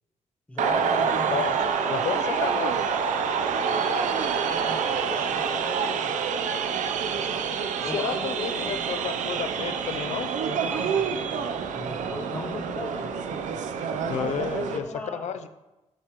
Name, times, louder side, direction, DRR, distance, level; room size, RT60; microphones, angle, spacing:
voice 1, 0.5-2.5 3.4-6.2 7.1-7.5 7.8-8.8 10.6-13.1 14.2-15.4, left 1 dB, 10° left, 2 dB, 1.2 m, -38 dB
sound 1, 0.6-14.8, right 6 dB, 85° right, 0.7 m, -27 dB
voice 2, 1.9-2.9 7.9-10.3 14.1-14.8 15.2-15.5, left 8 dB, 65° left, 12 dB, 0.5 m, -31 dB
9.0 x 8.2 x 3.1 m, 1.0 s
wide cardioid pair, 140°, 12 cm